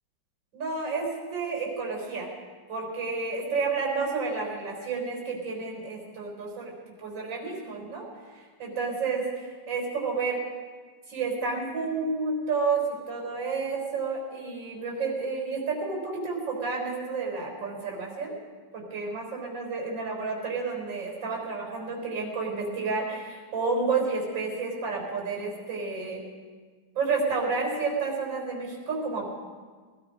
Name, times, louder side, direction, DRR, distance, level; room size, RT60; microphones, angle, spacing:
voice 1, 0.5-2.3 2.7-6.7 7.0-8.0 8.6-10.4 11.1-12.8 13.1-18.3 18.7-26.2 26.9-29.3, right 4 dB, 85° right, -1 dB, 4.7 m, -30 dB
19.5 x 13.5 x 5.2 m, 1.5 s
omnidirectional pair, 2.0 m